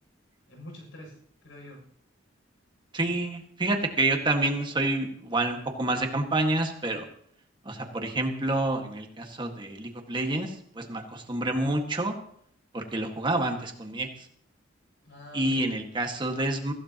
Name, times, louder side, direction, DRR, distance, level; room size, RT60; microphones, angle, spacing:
voice 1, 0.5-1.8 15.0-15.7, left 1 dB, 85° left, 1 dB, 7.1 m, -46 dB
voice 2, 2.9-7.1 7.7-12.1 12.7-14.1 15.3-16.7, right 2 dB, 25° right, 3 dB, 1.8 m, -28 dB
23.5 x 15.5 x 3.0 m, 0.64 s
head